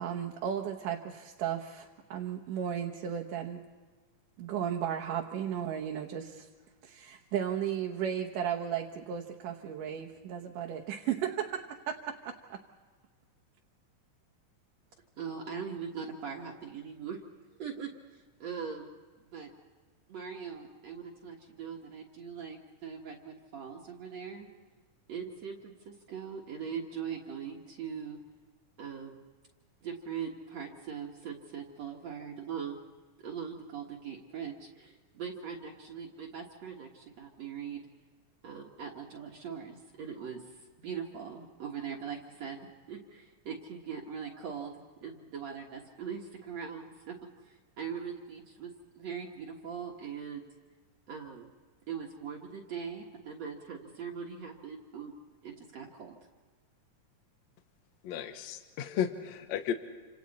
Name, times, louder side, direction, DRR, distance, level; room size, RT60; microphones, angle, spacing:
voice 1, 0.0-3.6 4.4-6.5 6.8-12.6, right 9 dB, 85° right, 1 dB, 2.8 m, -35 dB
voice 2, 15.2-17.2 17.6-19.5 20.1-24.5 25.1-28.2 28.8-29.2 29.8-32.8 33.2-37.9 38.4-50.5 51.1-51.5 51.9-55.1 55.4-56.2, right 7 dB, 60° right, -1 dB, 2.6 m, -41 dB
voice 3, 58.0-59.7, left 9 dB, 65° left, 7 dB, 2.2 m, -34 dB
29.0 x 27.0 x 4.2 m, 1.4 s
omnidirectional pair, 3.7 m